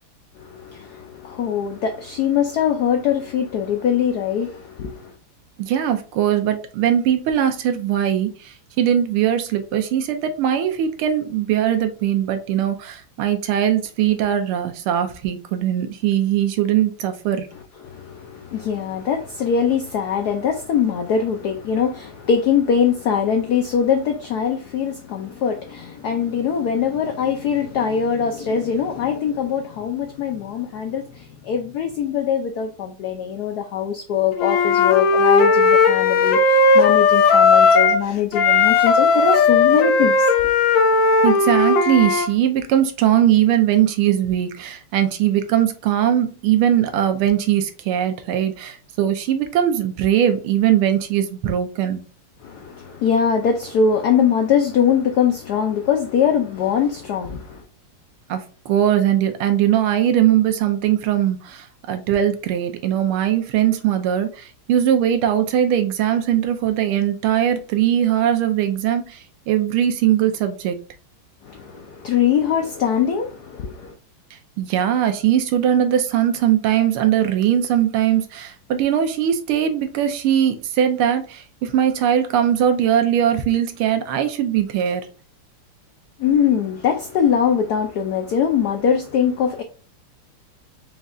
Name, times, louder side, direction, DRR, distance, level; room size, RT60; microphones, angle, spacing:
voice 1, 0.4-5.1 17.8-40.3 52.4-57.6 71.4-73.9 86.2-89.6, left 7 dB, 85° left, 0.8 m, -22 dB
voice 2, 5.6-17.5 41.2-52.0 58.3-69.2 69.5-70.8 74.6-85.1, right 10 dB, 85° right, 1.6 m, -20 dB
Wind instrument woodwind instrument, 34.4-38.0 38.3-42.3, left 4 dB, 70° left, 1.2 m, -16 dB
5.3 x 2.4 x 3.6 m
omnidirectional pair, 2.4 m